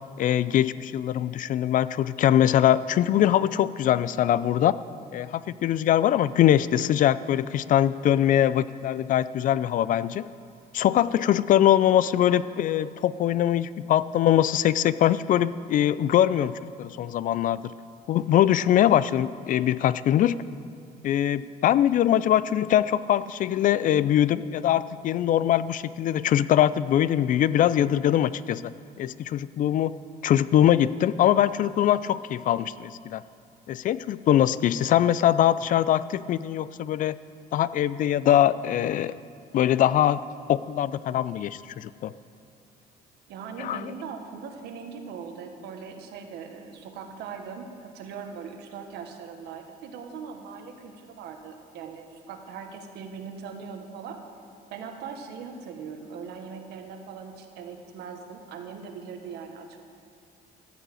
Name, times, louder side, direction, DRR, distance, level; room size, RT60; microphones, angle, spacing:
voice 1, 0.2-4.7 5.1-10.2 10.7-17.6 18.1-20.3 21.0-28.7 29.0-29.9 30.2-33.2 33.7-37.2 37.5-39.1 39.5-40.2 40.5-42.1 43.6-43.9, left 11 dB, 50° left, 17 dB, 0.4 m, -22 dB
voice 2, 43.3-54.2 54.7-59.8, right 6 dB, 80° right, 5 dB, 1.3 m, -40 dB
14.0 x 5.5 x 9.0 m, 2.4 s
cardioid pair, 110°, 17 cm